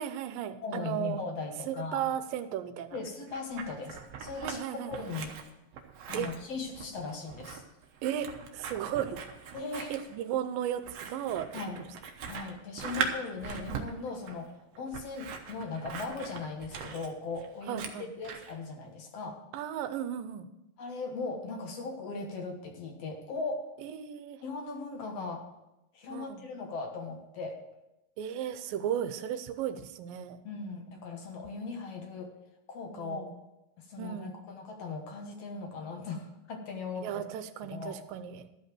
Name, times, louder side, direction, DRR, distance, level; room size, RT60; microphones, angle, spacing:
voice 1, 0.0-1.2 1.7-3.0 4.4-5.1 6.1-6.3 8.0-9.2 9.9-11.5 17.7-18.1 19.5-20.5 23.8-24.4 26.1-26.4 28.2-30.4 33.0-33.3 34.0-34.4 37.0-38.5, right 10 dB, 80° right, 10 dB, 2.4 m, -35 dB
voice 2, 0.6-2.1 2.9-5.3 6.1-7.6 9.5-10.0 11.5-11.8 12.3-19.4 20.8-23.7 24.4-25.5 25.9-27.6 30.4-32.3 32.7-33.3 33.8-37.2 37.6-38.0, left 4 dB, 60° left, 3 dB, 1.9 m, -38 dB
Scissors, 3.0-4.6 4.9-18.5, right 6 dB, 65° right, 1.7 m, -40 dB
12.5 x 5.6 x 7.6 m, 0.92 s
omnidirectional pair, 4.1 m